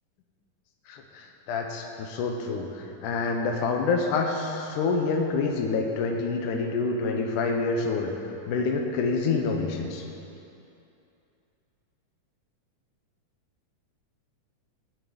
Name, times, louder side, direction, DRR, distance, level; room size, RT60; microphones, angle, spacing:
voice 1, 0.9-10.1, left 4 dB, 85° left, 2 dB, 2.4 m, -27 dB
17.0 x 6.2 x 5.0 m, 2.7 s
omnidirectional pair, 3.6 m